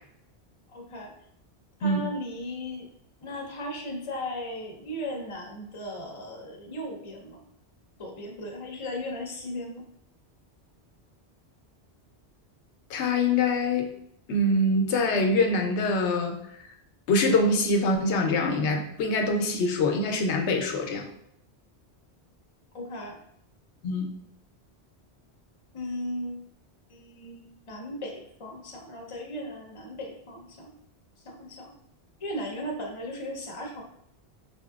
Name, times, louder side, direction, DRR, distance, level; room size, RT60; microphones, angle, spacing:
voice 1, 0.7-1.1 1.8-2.9 3.2-7.4 8.0-9.9 22.7-23.2 25.7-26.4 26.9-30.7 31.2-31.7 32.2-33.8, left 1 dB, 35° left, 1 dB, 0.6 m, -36 dB
voice 2, 12.9-13.9 14.3-16.4 17.1-21.1 23.8-24.1, left 2 dB, 85° left, 3 dB, 0.9 m, -24 dB
4.2 x 2.7 x 2.3 m, 0.73 s
omnidirectional pair, 1.1 m